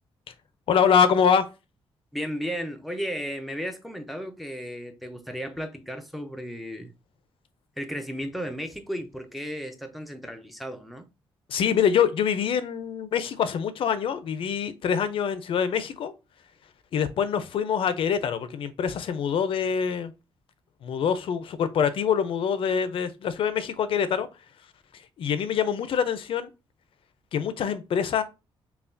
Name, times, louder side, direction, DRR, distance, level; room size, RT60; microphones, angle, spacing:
voice 1, 0.7-1.5 11.5-16.1 16.9-20.1 20.8-24.3 25.2-26.5 27.3-28.2, left 7 dB, 65° left, 0.5 m, -25 dB
voice 2, 2.1-6.9 7.8-11.1, equal, ahead, 0.6 m, -34 dB
5.6 x 2.3 x 2.6 m
cardioid pair, 135°, 10 cm